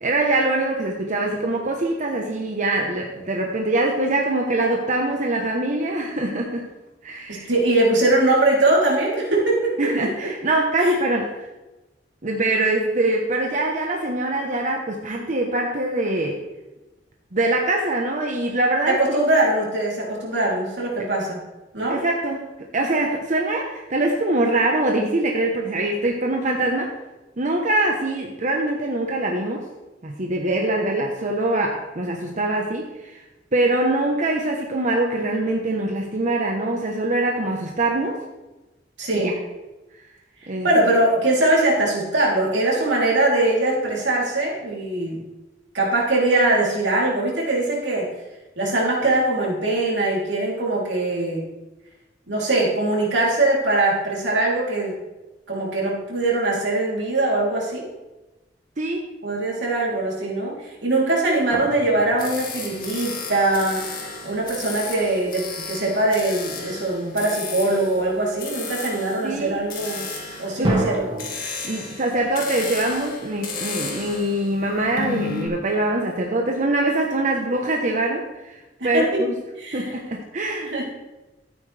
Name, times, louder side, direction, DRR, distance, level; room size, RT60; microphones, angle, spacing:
voice 1, 0.0-6.7 7.0-7.5 9.8-11.3 12.2-16.4 17.3-19.2 21.9-22.5 22.7-26.9 27.4-29.6 30.0-33.2 33.5-38.2 39.1-39.3 40.5-40.7 58.8-59.1 69.2-69.6 70.3-70.8 71.4-78.6 78.8-79.3 79.7-80.7, right 2 dB, 45° right, 1 dB, 1.1 m, -23 dB
voice 2, 7.3-10.3 10.8-10.9 18.9-21.4 21.7-22.0 39.0-39.4 40.6-45.2 45.7-48.1 48.6-51.4 52.3-54.9 55.5-57.9 59.2-63.8 64.2-70.1 70.4-71.1 78.8-79.2 79.6-79.9 80.7-80.8, right 2 dB, 85° right, -3 dB, 3.3 m, -22 dB
sound 1, 61.5-63.6 70.6-71.3, right 2 dB, 30° right, 2.1 m, -28 dB
sound 2, 62.2-75.5, left 4 dB, 55° left, 2.1 m, -34 dB
13.0 x 9.3 x 3.4 m, 1.1 s
head